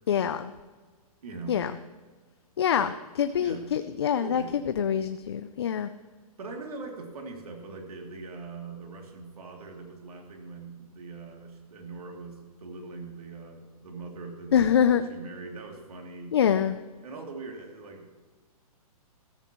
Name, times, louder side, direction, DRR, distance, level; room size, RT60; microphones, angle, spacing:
voice 1, 0.1-0.5 1.5-1.7 2.6-2.9 3.2-5.9 14.5-15.0 16.3-16.8, left 8 dB, 45° left, 10 dB, 0.4 m, -25 dB
voice 2, 1.2-1.6 2.8-2.9 3.4-3.6 4.2-4.5 6.4-16.3 17.0-18.1, right 4 dB, 75° right, 1 dB, 2.8 m, -42 dB
14.5 x 14.0 x 3.1 m, 1.4 s
hypercardioid pair, 180°, 19 cm